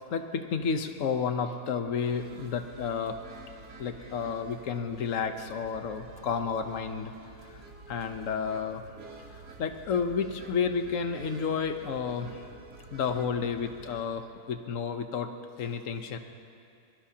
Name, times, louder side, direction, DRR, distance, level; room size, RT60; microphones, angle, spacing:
voice 1, 0.1-3.2 3.8-7.1 7.9-8.8 9.6-12.4 12.9-15.3 15.6-16.2, left 6 dB, 60° left, 7 dB, 1.2 m, -31 dB
sound 1, 2.0-14.0, right 3 dB, 80° right, 2.0 m, -49 dB
22.0 x 22.0 x 2.9 m, 2.5 s
omnidirectional pair, 1.7 m